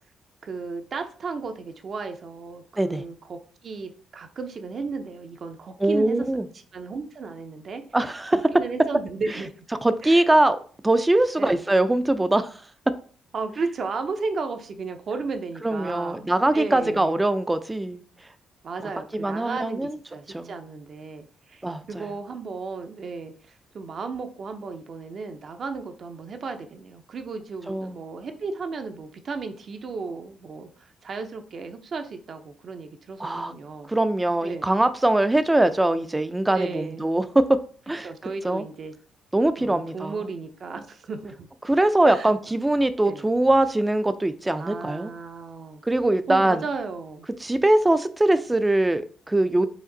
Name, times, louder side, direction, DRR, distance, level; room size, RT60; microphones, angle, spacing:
voice 1, 0.4-6.4 6.7-7.8 8.5-9.5 10.0-10.3 11.4-11.6 13.3-17.2 18.6-21.6 21.9-33.9 34.4-34.7 36.5-37.1 38.0-38.9 39.6-41.5 42.0-42.3 43.0-43.2 44.6-45.8 46.3-47.3, right 4 dB, 50° right, 0.7 m, -34 dB
voice 2, 5.8-6.5 7.9-8.4 9.8-10.6 10.8-12.5 15.6-18.0 18.8-20.0 20.3-20.6 21.6-22.1 27.7-27.9 33.2-33.5 33.9-37.6 37.9-38.1 38.4-38.6 39.3-40.2 41.6-45.1 45.9-46.6 47.4-49.7, right 1 dB, 15° right, 0.4 m, -22 dB
5.0 x 2.5 x 3.9 m
cardioid pair, 90°, 0 cm